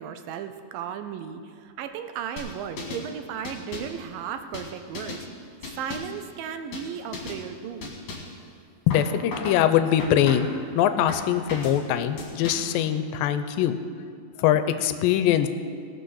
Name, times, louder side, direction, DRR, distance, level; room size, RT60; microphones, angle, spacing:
voice 1, 0.0-5.3 5.6-7.9, right 8 dB, 80° right, 8 dB, 2.4 m, -35 dB
sound 1, 2.4-3.1 3.5-4.0 4.5-5.3 5.6-6.2 6.7-6.9 7.1-7.4 7.8-8.4 8.9-9.6 10.0-10.6 11.1-11.8 12.2-12.8, left 3 dB, 50° left, 2.8 m, -36 dB
voice 2, 8.9-13.8 14.4-15.5, left 10 dB, 85° left, 10 dB, 2.4 m, -22 dB
18.5 x 6.4 x 6.3 m, 2.2 s
omnidirectional pair, 4.0 m